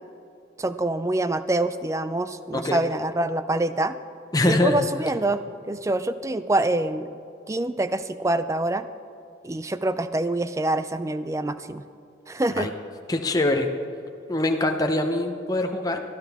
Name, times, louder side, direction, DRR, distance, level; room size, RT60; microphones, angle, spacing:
voice 1, 0.6-4.0 4.4-7.2 7.5-8.9 9.4-11.8 12.3-12.7, right 2 dB, 15° right, 12 dB, 0.4 m, -25 dB
voice 2, 4.3-4.9 12.5-12.7 13.1-13.7 14.3-16.0, left 2 dB, 20° left, 4 dB, 0.7 m, -23 dB
19.0 x 12.5 x 3.5 m, 2.6 s
head